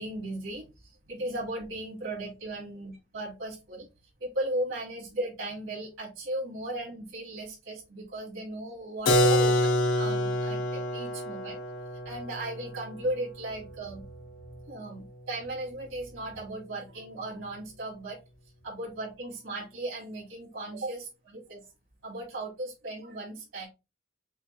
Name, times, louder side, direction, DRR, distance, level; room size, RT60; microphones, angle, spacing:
voice 1, 0.0-2.9 3.1-3.9 4.2-9.5 9.9-11.6 12.0-14.0 14.7-18.2 18.6-21.6 22.0-23.7, right 1 dB, 85° right, -5 dB, 2.8 m, -36 dB
Keyboard (musical), 9.1-14.7, left 1 dB, 90° left, 0.9 m, -27 dB
6.8 x 2.3 x 2.8 m, 0.26 s
head